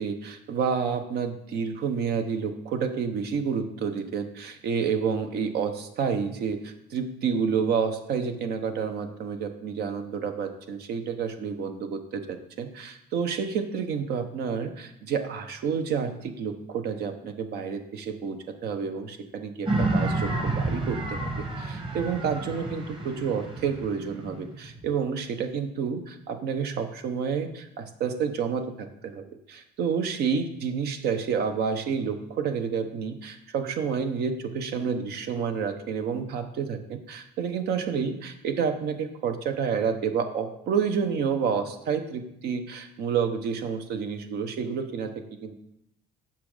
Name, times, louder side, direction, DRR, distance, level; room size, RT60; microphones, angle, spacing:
voice 1, 0.0-29.2 29.5-45.5, right 6 dB, 70° right, 7 dB, 1.0 m, -29 dB
sound 1, 19.6-24.9, right 2 dB, 30° right, 1.5 m, -30 dB
7.4 x 5.9 x 5.0 m, 0.79 s
cardioid pair, 110°, 17 cm